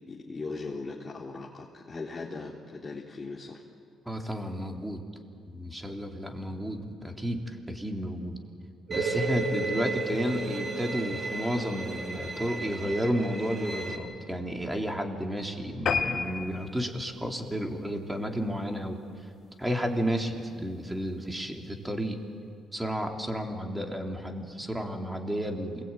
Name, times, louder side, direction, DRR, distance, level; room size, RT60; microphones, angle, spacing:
voice 1, 0.1-3.6 9.2-9.4, left 3 dB, 30° left, -4 dB, 3.5 m, -39 dB
voice 2, 4.1-5.0 5.5-8.4 8.9-19.0 19.6-22.2 22.7-25.8, equal, 10° right, 2 dB, 3.6 m, -32 dB
Bowed string instrument, 8.9-14.0, right 3 dB, 30° right, 4.6 m, -37 dB
sound 1, 8.9-14.3, right 3 dB, 65° right, 3.1 m, -35 dB
sound 2, 15.9-18.6 19.1-19.3 19.7-19.8 20.1-20.2 20.5-20.6, left 5 dB, 55° left, 2.4 m, -32 dB
28.0 x 20.5 x 9.2 m, 2.3 s
supercardioid pair, 65°, 0 cm